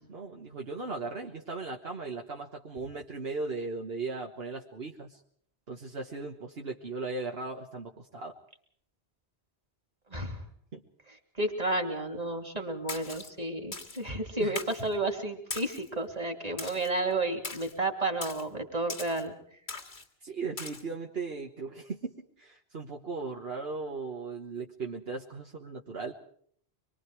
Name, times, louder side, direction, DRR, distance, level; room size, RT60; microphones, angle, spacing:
voice 1, 0.1-5.2 5.7-8.3 10.7-10.8 14.4-14.6 20.2-26.1, right 4 dB, 65° right, 1 dB, 1.6 m, -37 dB
voice 2, 10.1-10.4 11.4-19.3, right 2 dB, 35° right, 4 dB, 3.0 m, -31 dB
Splash splatter, 12.9-13.3 13.7-14.0 14.6-14.9 15.5-15.9 16.6-16.9 17.4-17.7 18.2-18.4 18.9-19.2 19.7-20.0 20.6-20.8, left 4 dB, 75° left, 2.2 m, -40 dB
25.5 x 22.5 x 4.8 m, 0.62 s
omnidirectional pair, 1.1 m